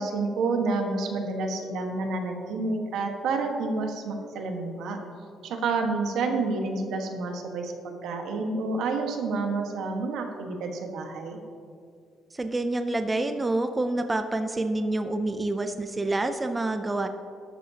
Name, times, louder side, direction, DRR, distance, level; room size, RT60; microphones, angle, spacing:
voice 1, 0.0-5.0 5.4-11.4, right 3 dB, 80° right, 3 dB, 1.4 m, -29 dB
voice 2, 12.3-17.1, right 2 dB, 15° right, 8 dB, 0.4 m, -27 dB
13.0 x 12.0 x 2.8 m, 2.3 s
cardioid pair, 175°, 0 cm